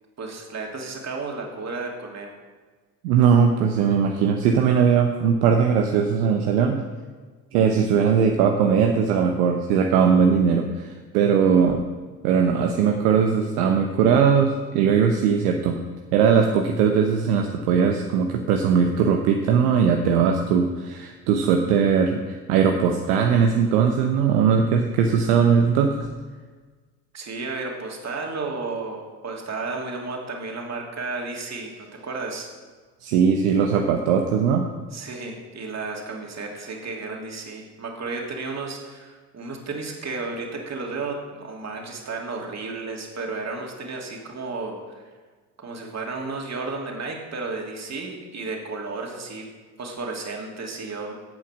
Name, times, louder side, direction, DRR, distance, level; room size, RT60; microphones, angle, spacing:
voice 1, 0.2-2.3 27.1-32.5 34.9-45.0 45.6-49.4 49.8-51.1, right 3 dB, 35° right, 0 dB, 2.7 m, -33 dB
voice 2, 3.0-6.8 7.5-11.8 12.2-15.8 16.1-26.0 33.0-34.6, right 6 dB, 70° right, 4 dB, 1.1 m, -20 dB
11.0 x 8.5 x 6.1 m, 1.4 s
figure-of-eight pair, 55°, 47 cm